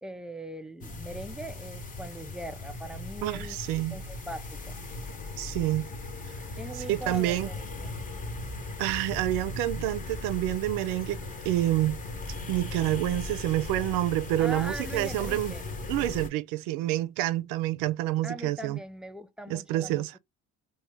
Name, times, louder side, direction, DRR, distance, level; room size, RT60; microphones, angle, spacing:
voice 1, 0.0-3.6 3.9-4.8 6.6-7.9 14.4-15.6 18.2-20.2, right 1 dB, ahead, 0.3 m, -40 dB
sound 1, 0.8-16.3, left 2 dB, 25° left, 0.8 m, -38 dB
voice 2, 3.2-4.0 5.4-5.9 6.8-7.5 8.8-11.2 11.4-12.0 12.5-15.5 15.9-18.8 19.5-20.1, right 15 dB, 90° right, 0.5 m, -28 dB
3.0 x 2.3 x 3.3 m
cardioid pair, 110°, 32 cm